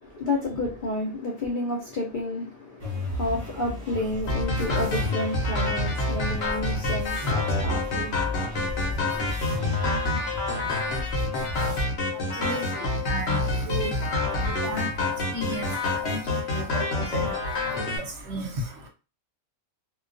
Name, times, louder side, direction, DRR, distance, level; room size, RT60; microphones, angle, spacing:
voice 1, 0.0-9.2, left 2 dB, 85° left, 0.4 m, -31 dB
sound 1, 2.8-11.8, left 2 dB, 35° right, 0.8 m, -33 dB
sound 2, 4.3-18.0, left 2 dB, 55° left, 0.9 m, -28 dB
voice 2, 11.4-18.9, right 1 dB, 60° right, 0.8 m, -35 dB
2.3 x 2.2 x 2.5 m
omnidirectional pair, 1.5 m